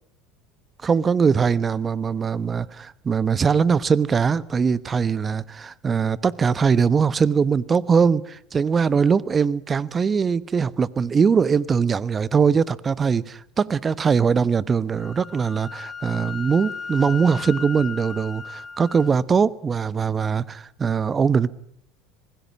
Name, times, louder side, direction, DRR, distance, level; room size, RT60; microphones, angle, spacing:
voice 1, 0.8-21.5, right 6 dB, 30° right, 1.0 m, -21 dB
Wind instrument woodwind instrument, 14.9-19.1, left 6 dB, 25° left, 2.6 m, -36 dB
26.5 x 20.5 x 8.5 m
hypercardioid pair, 75°, 0 cm